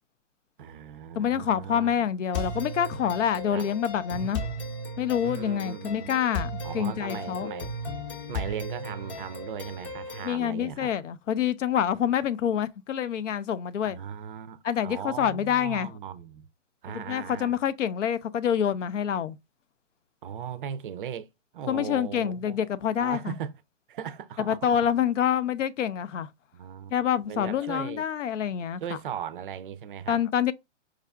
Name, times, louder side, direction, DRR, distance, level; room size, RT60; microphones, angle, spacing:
voice 1, 0.6-2.1 3.5-3.7 4.1-4.7 5.2-6.1 6.6-7.7 8.3-10.9 13.8-16.5 16.8-17.5 20.2-21.3 21.5-22.6 23.0-23.5 23.9-24.8 26.5-26.9 27.3-28.0 28.8-30.2, right 8 dB, 45° right, 0.4 m, -38 dB
voice 2, 1.2-4.4 5.0-7.5 10.2-14.0 14.6-15.9 16.9-19.4 21.7-23.4 24.4-26.3 26.9-29.0 30.1-30.5, left 9 dB, 85° left, 0.5 m, -27 dB
sound 1, 2.3-10.3, left 2 dB, 25° left, 0.7 m, -36 dB
4.6 x 2.4 x 2.2 m
hypercardioid pair, 135°, 36 cm